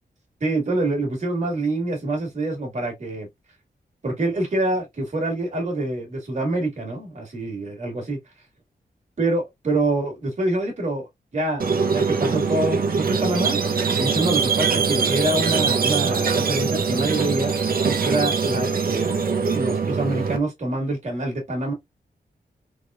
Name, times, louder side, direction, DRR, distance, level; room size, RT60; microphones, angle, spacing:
voice 1, 0.4-3.3 4.0-8.2 9.2-11.1 11.3-13.6 14.0-17.5 18.0-19.2 19.5-21.7, right 2 dB, 45° right, 1.9 m, -26 dB
Squeak, 11.6-20.4, right 5 dB, 65° right, 0.8 m, -22 dB
3.8 x 3.6 x 2.4 m
wide cardioid pair, 140°, 16 cm